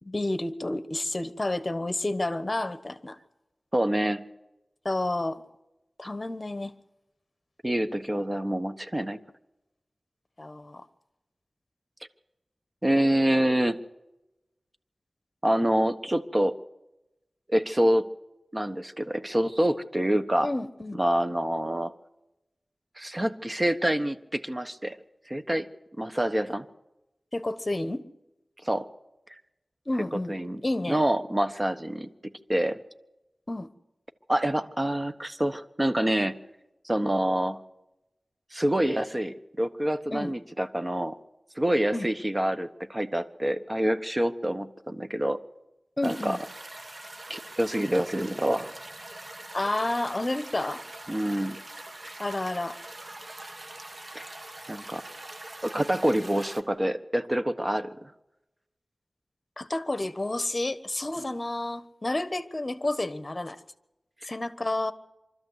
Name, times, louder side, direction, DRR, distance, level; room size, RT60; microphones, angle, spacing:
voice 1, 0.0-3.2 4.8-5.4 6.0-6.7 10.4-10.9 20.4-21.0 27.3-28.1 29.9-30.3 30.6-31.0 33.5-33.7 40.1-40.3 41.9-42.1 46.0-46.4 49.5-50.8 52.2-52.8 55.7-55.9 59.6-63.6 64.2-64.9, left 2 dB, 35° left, 12 dB, 1.3 m, -30 dB
voice 2, 3.7-4.2 7.6-9.2 12.8-13.8 15.4-16.5 17.5-18.1 18.5-20.5 20.9-21.9 23.0-25.0 25.3-25.7 26.0-26.6 28.6-28.9 30.1-30.6 30.9-32.8 34.3-36.4 36.8-37.6 38.5-41.2 41.6-45.4 46.0-46.4 47.3-48.7 51.1-51.6 52.0-52.2 54.1-54.2 54.7-55.0 55.6-58.1, right 1 dB, 25° right, 9 dB, 1.2 m, -26 dB
sound 1, 46.0-56.6, right 2 dB, 45° right, 1.5 m, -43 dB
24.5 x 13.5 x 8.1 m, 0.96 s
wide cardioid pair, 70°, 0 cm